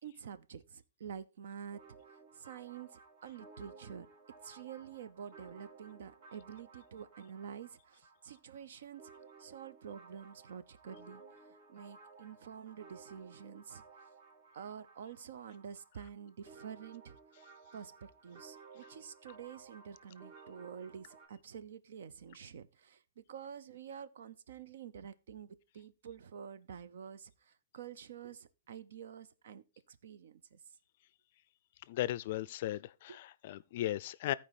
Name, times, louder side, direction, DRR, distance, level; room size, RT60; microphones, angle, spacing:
voice 1, 0.0-1.8 2.1-4.1 4.4-9.1 9.4-13.8 14.5-17.2 17.7-30.6 33.1-33.2, right 7 dB, 75° right, 0.7 m, -48 dB
sound 1, 1.7-21.3, right 4 dB, 50° right, 2.1 m, -57 dB
voice 2, 31.9-34.3, left 14 dB, 50° left, 0.4 m, -36 dB
14.0 x 4.7 x 4.1 m
hypercardioid pair, 155°, 0 cm